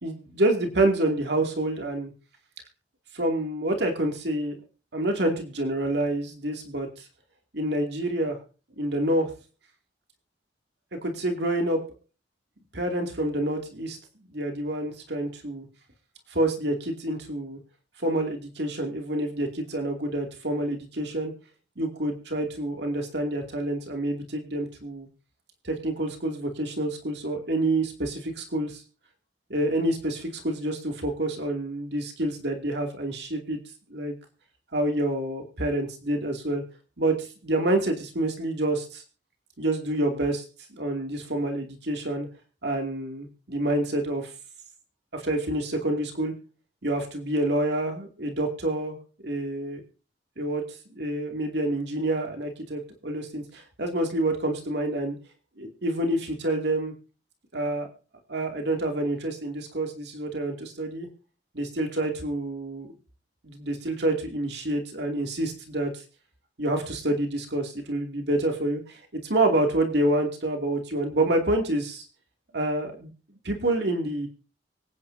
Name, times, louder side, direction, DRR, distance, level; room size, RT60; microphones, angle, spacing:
voice 1, 0.0-2.1 3.1-4.5 4.9-7.0 7.5-8.4 8.8-9.3 11.0-11.8 12.7-14.0 14.3-15.7 16.3-17.6 18.0-21.3 21.8-25.1 25.6-28.8 29.5-33.6 33.9-34.1 34.7-36.6 37.0-39.0 39.6-40.4 40.7-42.3 42.6-44.3 45.1-46.3 46.8-49.0 49.2-49.8 50.4-50.6 50.9-55.2 55.6-56.9 57.5-57.9 58.3-61.1 61.5-62.9 63.4-66.0 66.6-69.0 69.3-72.0 72.5-73.1 73.4-74.3, right 1 dB, 65° right, 3 dB, 2.6 m, -27 dB
24.5 x 9.7 x 2.7 m, 0.36 s
head